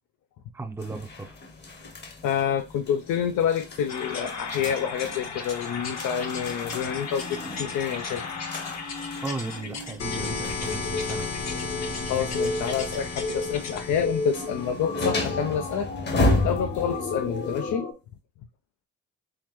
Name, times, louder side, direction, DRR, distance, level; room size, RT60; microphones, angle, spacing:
voice 1, 0.5-1.4 9.2-11.3, right 3 dB, 10° right, 0.5 m, -35 dB
sound 1, 0.8-17.7, left 2 dB, 35° left, 0.9 m, -34 dB
voice 2, 2.2-8.2 12.1-15.9 16.4-17.9, left 8 dB, 80° left, 0.5 m, -28 dB
sound 2, 3.9-17.9, left 3 dB, 60° left, 1.1 m, -33 dB
3.8 x 3.1 x 3.0 m
cardioid pair, 90°, 30 cm